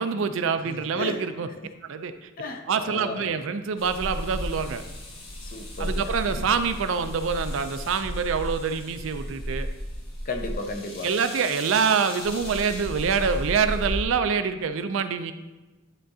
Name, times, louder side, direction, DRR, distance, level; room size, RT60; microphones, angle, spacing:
voice 1, 0.0-1.5 1.8-2.3 2.7-4.8 5.8-9.7 11.0-15.3, right 6 dB, 65° right, 10 dB, 0.4 m, -26 dB
voice 2, 0.6-1.3 1.6-1.7 2.4-3.3 5.4-6.1 10.3-11.1, left 2 dB, 40° left, 5 dB, 0.5 m, -34 dB
sound 1, 3.8-14.0, equal, 70° left, 1.3 m, -34 dB
10.0 x 3.7 x 2.7 m, 1.1 s
head